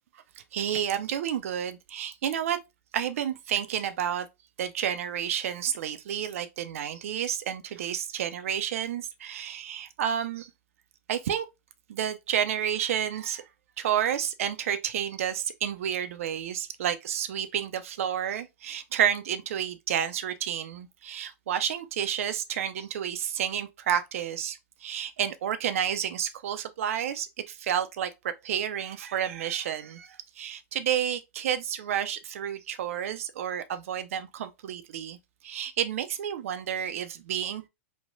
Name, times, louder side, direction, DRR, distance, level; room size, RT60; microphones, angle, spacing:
voice 1, 0.5-2.6 2.9-4.3 4.6-10.5 11.1-11.5 11.9-13.4 13.8-28.1 28.4-35.2 35.4-37.7, right 9 dB, 75° right, 0.4 m, -30 dB
3.1 x 2.1 x 2.5 m
hypercardioid pair, 135°, 8 cm